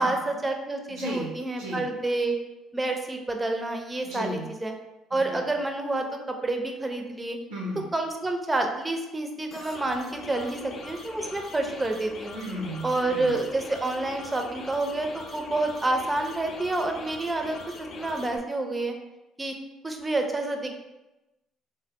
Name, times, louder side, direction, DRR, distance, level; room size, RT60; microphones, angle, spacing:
voice 1, 0.0-2.4 2.7-4.7 5.1-7.4 7.9-12.4 12.8-18.9 19.4-19.5 19.8-20.7, right 2 dB, 20° right, 4 dB, 0.5 m, -28 dB
voice 2, 0.9-1.9 4.0-4.5 5.1-5.4 7.5-7.9 12.3-13.4, equal, 80° right, -2 dB, 0.6 m, -35 dB
sound 1, 9.5-18.4, left 3 dB, 50° left, 0.4 m, -42 dB
3.5 x 2.1 x 2.8 m, 1.0 s
hypercardioid pair, 55°, 0 cm